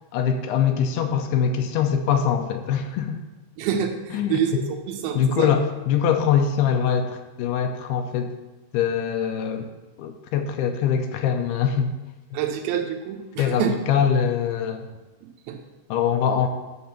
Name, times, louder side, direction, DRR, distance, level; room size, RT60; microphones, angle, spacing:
voice 1, 0.1-3.2 4.1-4.7 5.2-8.4 8.7-9.7 10.0-11.9 13.4-14.9 15.9-16.5, left 8 dB, 80° left, 6 dB, 2.6 m, -23 dB
voice 2, 3.6-5.5 12.3-13.7 15.5-15.6, right 8 dB, 75° right, 3 dB, 2.7 m, -27 dB
9.4 x 3.8 x 7.2 m, 1.2 s
omnidirectional pair, 4.7 m